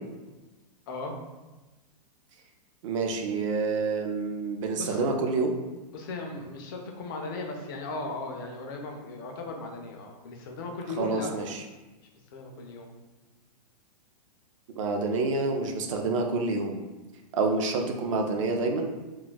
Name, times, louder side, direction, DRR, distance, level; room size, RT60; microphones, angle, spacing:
voice 1, 0.9-1.2 4.8-5.0 5.9-11.3 12.3-12.9, left 3 dB, 30° left, 2 dB, 0.4 m, -37 dB
voice 2, 2.8-5.6 11.0-11.6 14.8-16.8 17.3-18.9, right 3 dB, 50° right, 3 dB, 0.4 m, -28 dB
2.3 x 2.1 x 3.8 m, 1.2 s
hypercardioid pair, 165°, 21 cm